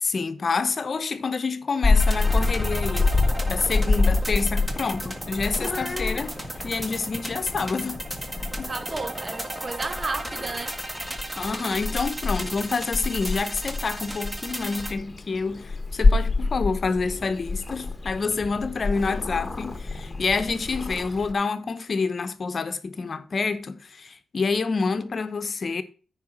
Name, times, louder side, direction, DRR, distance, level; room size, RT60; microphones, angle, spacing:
voice 1, 0.0-3.2 3.5-6.4 6.6-8.0 8.6-8.7 11.3-25.8, left 4 dB, 50° left, 0.9 m, -28 dB
Purr / Meow, 1.8-21.3, left 3 dB, 30° left, 1.2 m, -27 dB
sound 1, 2.0-14.9, right 1 dB, 15° right, 1.7 m, -35 dB
voice 2, 8.6-10.8, right 3 dB, 40° right, 0.7 m, -33 dB
9.5 x 4.9 x 5.9 m
cardioid pair, 60°, 0 cm